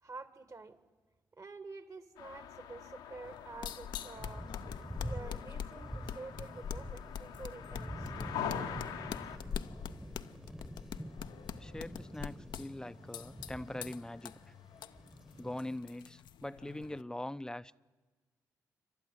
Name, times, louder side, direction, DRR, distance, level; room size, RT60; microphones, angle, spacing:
voice 1, 0.0-0.8 1.4-4.5 5.0-8.1, right 3 dB, 40° right, 1.8 m, -48 dB
sound 1, 2.2-9.4, left 8 dB, 90° left, 1.2 m, -44 dB
sound 2, 3.2-17.0, left 8 dB, 70° left, 0.6 m, -45 dB
Thunder, 4.1-15.8, equal, 5° right, 1.1 m, -47 dB
voice 2, 11.6-14.3 15.4-17.8, left 1 dB, 10° left, 0.6 m, -42 dB
28.0 x 12.0 x 9.4 m
hypercardioid pair, 40°, 8 cm